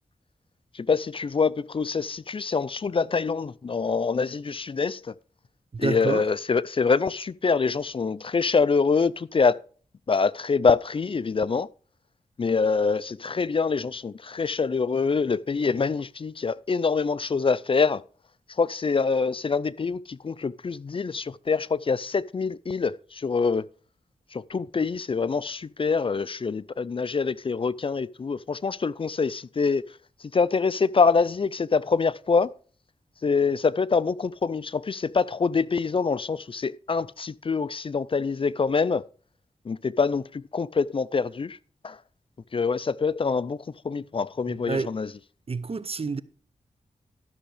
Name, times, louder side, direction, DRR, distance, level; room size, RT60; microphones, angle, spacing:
voice 1, 0.7-5.1 5.8-9.6 10.1-11.7 12.4-18.0 18.6-23.7 24.3-29.8 30.3-32.5 33.2-39.0 39.7-41.6 41.8-42.0 42.5-43.6 43.8-45.1, left 5 dB, 40° left, 0.4 m, -25 dB
voice 2, 5.7-6.2 44.5-44.9 45.5-46.2, right 4 dB, 45° right, 0.7 m, -29 dB
13.0 x 6.5 x 4.9 m
cardioid pair, 60°, 14 cm